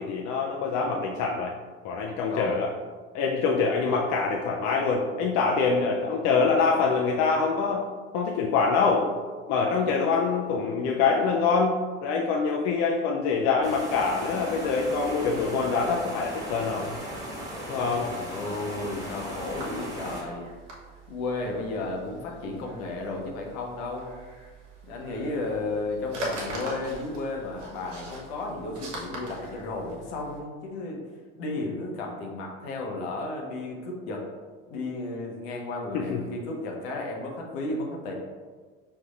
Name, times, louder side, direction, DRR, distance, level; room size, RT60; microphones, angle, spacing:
voice 1, 0.0-1.5 1.8-2.7 3.1-7.8 8.1-9.1 9.5-16.9 17.7-18.1 35.9-36.2, left 4 dB, 50° left, -1 dB, 0.5 m, -25 dB
sound 1, 13.6-20.2, equal, 10° right, 1.4 m, -37 dB
voice 2, 17.9-20.5 21.1-24.2 24.8-31.0 31.4-34.3 34.7-38.1, left 2 dB, 65° left, 0 dB, 0.9 m, -33 dB
sound 2, 18.9-30.4, right 1 dB, 75° right, 0.9 m, -42 dB
5.3 x 2.6 x 2.4 m, 1.5 s
hypercardioid pair, 65°, 36 cm